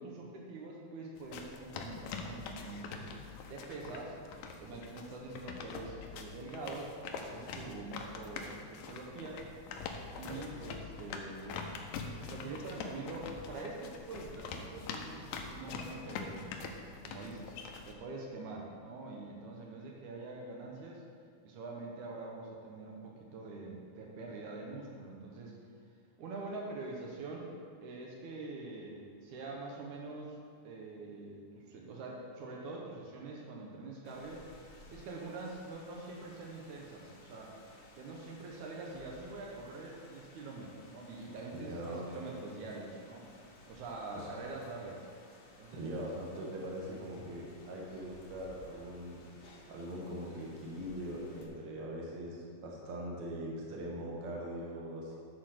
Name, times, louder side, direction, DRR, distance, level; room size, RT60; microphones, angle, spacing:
voice 1, 0.0-3.1 3.5-4.2 4.6-9.5 10.2-11.6 12.3-17.5 17.9-21.0 21.4-25.6 26.2-27.5 27.8-30.4 30.6-34.4 34.9-37.6 38.0-43.3 43.7-45.1 45.6-45.8, right 3 dB, 80° right, -1 dB, 2.4 m, -45 dB
sound 1, 1.2-17.9, left 5 dB, 75° left, 2.0 m, -44 dB
Rain, 34.0-51.5, left 2 dB, 55° left, 1.4 m, -58 dB
voice 2, 41.5-42.0 44.1-44.3 45.7-49.2 49.7-55.2, right 1 dB, 55° right, -3 dB, 2.1 m, -41 dB
9.9 x 4.4 x 6.4 m, 2.2 s
omnidirectional pair, 3.5 m